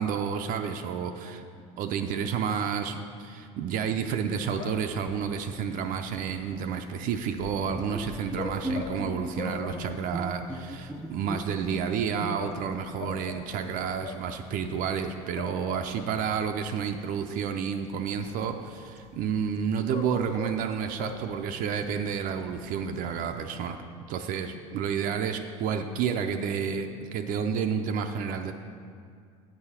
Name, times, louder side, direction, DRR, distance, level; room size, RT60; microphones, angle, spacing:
voice 1, 0.0-1.4 1.8-23.8 24.1-28.5, right 7 dB, 55° right, 6 dB, 0.5 m, -30 dB
sound 1, 4.5-23.4, left 4 dB, 45° left, 0.7 m, -44 dB
Bowed string instrument, 7.9-12.8, equal, ahead, 0.5 m, -38 dB
8.4 x 4.9 x 5.6 m, 2.2 s
supercardioid pair, 105°, 17 cm